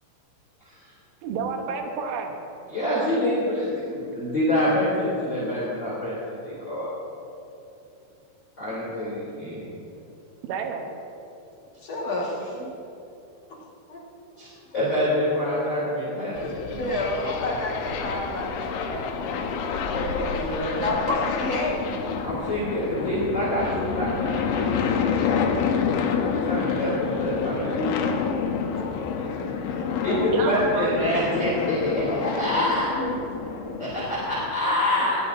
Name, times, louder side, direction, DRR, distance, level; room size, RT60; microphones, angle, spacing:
voice 1, 1.2-2.3 2.9-3.1 10.5-10.8 30.3-31.1, right 5 dB, 90° right, 3 dB, 3.6 m, -30 dB
voice 2, 2.7-6.9 8.6-9.6 14.4-14.5 14.7-17.0 19.9-20.8 22.2-24.7 26.2-28.0 30.0-33.0 33.8-35.2, left 1 dB, 30° left, -9 dB, 3.3 m, -26 dB
voice 3, 11.8-12.7 13.4-13.6 13.9-14.0 14.3-14.7 16.6-19.5 20.7-21.9 22.2-22.3 24.5-25.6 28.7-30.3 32.6-33.3 34.6-34.7, left 1 dB, 45° left, -5 dB, 2.4 m, -31 dB
sound 1, 16.3-34.6, left 6 dB, 85° left, 3.4 m, -28 dB
20.5 x 15.5 x 2.8 m, 2.7 s
omnidirectional pair, 5.4 m